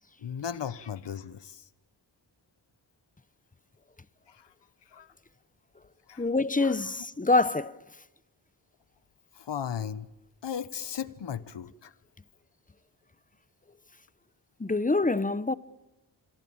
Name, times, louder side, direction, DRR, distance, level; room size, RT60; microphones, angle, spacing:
voice 1, 0.2-1.7 4.3-4.5 4.9-5.1 6.1-6.3 6.6-6.7 9.3-10.1 10.4-11.9, left 8 dB, 70° left, 1.1 m, -36 dB
voice 2, 6.2-7.7 14.6-15.5, left 3 dB, 20° left, 0.9 m, -25 dB
27.0 x 24.0 x 8.8 m
wide cardioid pair, 100°, 43 cm